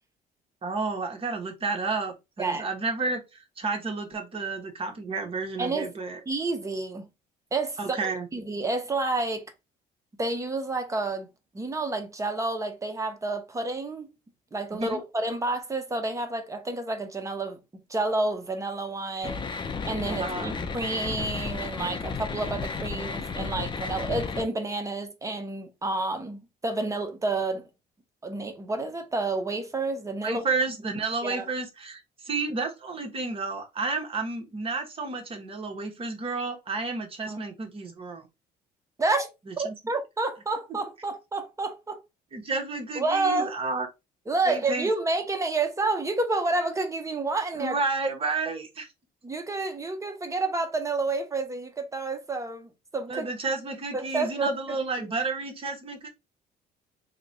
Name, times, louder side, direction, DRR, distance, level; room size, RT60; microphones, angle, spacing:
voice 1, 0.6-6.2 7.8-8.3 14.7-15.0 20.0-20.5 30.2-38.2 39.5-39.7 42.3-43.9 44.5-44.9 47.5-48.9 53.1-56.1, right 3 dB, 35° right, 1.2 m, -31 dB
voice 2, 5.6-5.9 6.3-7.1 7.5-9.4 10.2-11.3 11.5-14.1 14.5-17.6 17.9-27.7 28.2-30.4 31.2-31.5 37.3-37.4 39.0-42.0 42.9-43.5 44.3-47.8 49.2-53.3 53.9-55.1, right 3 dB, 20° right, 0.8 m, -29 dB
sound 1, 19.2-24.4, left 5 dB, 25° left, 0.6 m, -33 dB
2.9 x 2.4 x 4.0 m
cardioid pair, 110°, 17 cm